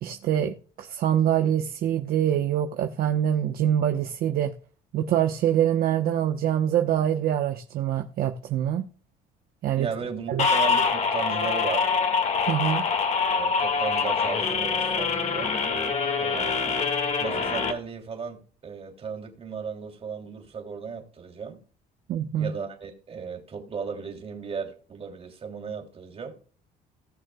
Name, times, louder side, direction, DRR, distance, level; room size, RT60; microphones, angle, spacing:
voice 1, 0.0-4.5 4.9-8.8 9.6-9.9 10.3-10.5 12.5-12.9 22.1-22.5, right 10 dB, 65° right, 1.0 m, -25 dB
voice 2, 9.8-11.9 13.3-15.5 16.2-16.8 17.2-21.6 22.4-26.4, right 5 dB, 35° right, 3.2 m, -35 dB
sound 1, 10.4-17.7, left 5 dB, 40° left, 2.0 m, -25 dB
18.5 x 6.5 x 2.3 m
cardioid pair, 110°, 17 cm